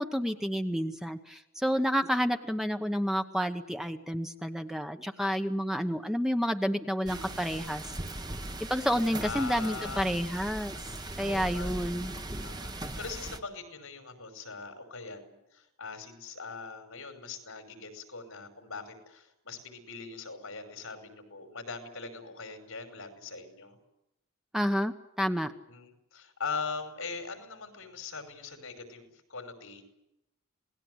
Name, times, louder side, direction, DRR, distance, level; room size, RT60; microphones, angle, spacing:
voice 1, 0.0-7.9 8.7-10.7 11.2-12.1 24.5-25.5, equal, ahead, 6 dB, 1.0 m, -30 dB
sound 1, 7.1-13.4, right 1 dB, 20° right, 1.2 m, -39 dB
voice 2, 9.2-10.2 11.2-12.1 12.4-23.8 25.7-29.8, left 4 dB, 75° left, 7 dB, 5.5 m, -41 dB
27.5 x 19.0 x 8.1 m, 0.86 s
head